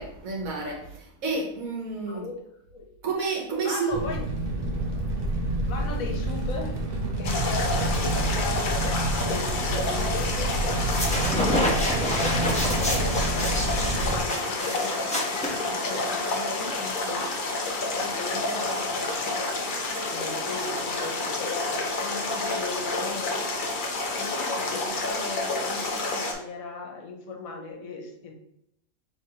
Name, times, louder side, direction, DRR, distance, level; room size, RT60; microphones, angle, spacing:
voice 1, 0.0-2.3 3.0-3.9, right 4 dB, 80° right, 0 dB, 1.4 m, -30 dB
voice 2, 2.0-2.4 2.7-2.8 3.5-4.2 5.7-6.8 7.2-8.9 9.3-10.8 11.1-17.3 17.7-19.5 20.1-23.5 24.2-28.3, left 4 dB, 80° left, 2 dB, 1.3 m, -37 dB
Fire, 3.9-14.2, right 1 dB, 45° right, 1.0 m, -28 dB
sound 1, 7.2-26.3, left 2 dB, 45° left, 0.7 m, -29 dB
sound 2, 10.7-16.1, left 1 dB, 5° left, 0.7 m, -29 dB
4.8 x 3.3 x 2.9 m, 0.76 s
omnidirectional pair, 1.5 m